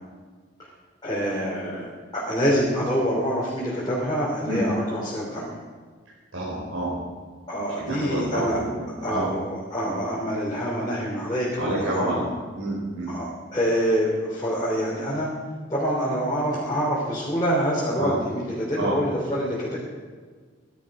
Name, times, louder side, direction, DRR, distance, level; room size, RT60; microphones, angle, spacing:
voice 1, 1.0-5.5 7.5-8.6 9.0-12.3 13.1-15.3 15.7-19.8, equal, 20° left, -7 dB, 3.3 m, -26 dB
voice 2, 6.3-6.9 7.8-9.3 9.8-10.0 11.6-13.1 18.0-18.1 18.8-19.0, right 1 dB, 85° right, -7 dB, 4.8 m, -29 dB
16.0 x 12.0 x 4.9 m, 1.5 s
head